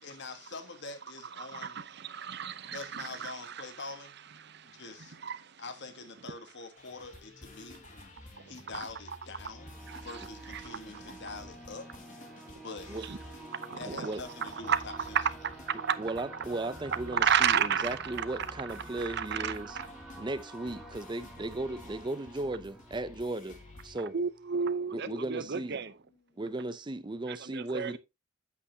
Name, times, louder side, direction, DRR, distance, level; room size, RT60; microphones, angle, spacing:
voice 1, 0.0-1.8 2.7-4.2 4.6-5.2 5.6-7.8 8.5-11.9 12.6-12.9 13.7-15.2 25.0-25.3 26.1-26.4, left 3 dB, 55° left, 1.4 m, -45 dB
voice 2, 1.4-3.5 4.4-4.8 5.2-5.6 8.4-8.8 9.9-10.0 10.5-10.6 13.1-13.2 13.6-14.1 14.7-14.8 15.4-16.0 17.1-18.3 18.6-18.7 19.0-19.9 24.1-25.9 27.3-28.0, right 7 dB, 55° right, 0.7 m, -32 dB
sound 1, 6.7-24.0, left 1 dB, 40° left, 1.9 m, -51 dB
sound 2, 9.5-24.9, right 2 dB, 5° right, 1.6 m, -49 dB
voice 3, 13.8-14.2 16.0-19.8 20.2-23.6 23.8-24.2 24.9-25.8 26.4-28.0, right 2 dB, 20° right, 0.5 m, -36 dB
8.4 x 8.1 x 2.8 m
head